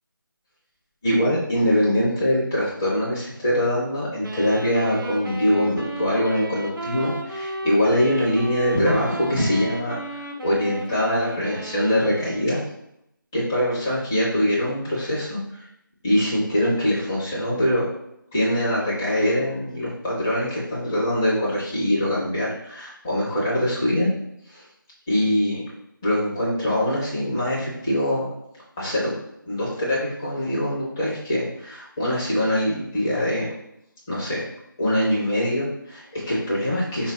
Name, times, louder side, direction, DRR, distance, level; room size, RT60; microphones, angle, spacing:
voice 1, 1.0-12.6 13.3-15.7 16.0-17.8 18.3-24.1 24.5-24.6 25.1-25.6 26.0-28.2 28.8-29.1 29.5-33.5 34.1-34.4 34.8-37.1, equal, 10° left, -7 dB, 0.5 m, -23 dB
sound 1, 4.2-12.6, right 2 dB, 75° right, 0.7 m, -34 dB
4.3 x 2.2 x 3.7 m, 0.79 s
figure-of-eight pair, 170°, 11 cm